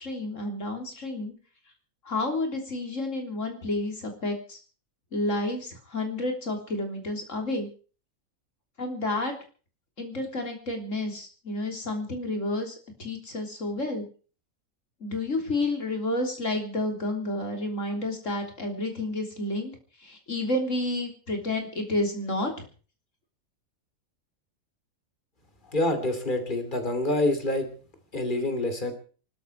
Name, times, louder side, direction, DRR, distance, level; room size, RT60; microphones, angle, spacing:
voice 1, 0.0-1.3 2.1-4.6 5.1-7.7 8.8-9.3 10.0-14.1 15.0-19.7 20.0-22.7, left 2 dB, 60° left, 4 dB, 3.8 m, -30 dB
voice 2, 25.7-27.7 28.1-28.9, left 1 dB, 35° left, 7 dB, 3.0 m, -26 dB
23.5 x 13.0 x 4.7 m, 0.40 s
omnidirectional pair, 1.5 m